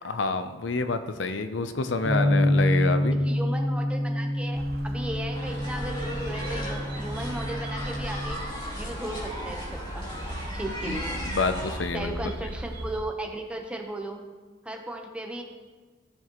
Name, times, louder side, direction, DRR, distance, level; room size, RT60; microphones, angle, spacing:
voice 1, 0.0-3.2 10.9-11.0 11.3-12.2, left 3 dB, 80° left, 10 dB, 0.6 m, -28 dB
Bass guitar, 2.0-8.3, left 1 dB, 25° right, 1.8 m, -27 dB
voice 2, 3.1-8.4 8.8-10.2 10.5-11.2 11.9-14.2 14.6-15.4, right 1 dB, 5° right, 2 dB, 0.9 m, -36 dB
sound 1, 4.5-13.0, right 1 dB, 55° right, 0.9 m, -38 dB
sound 2, 5.3-11.8, equal, 25° left, 2.6 m, -37 dB
14.5 x 7.2 x 3.1 m, 1.4 s
head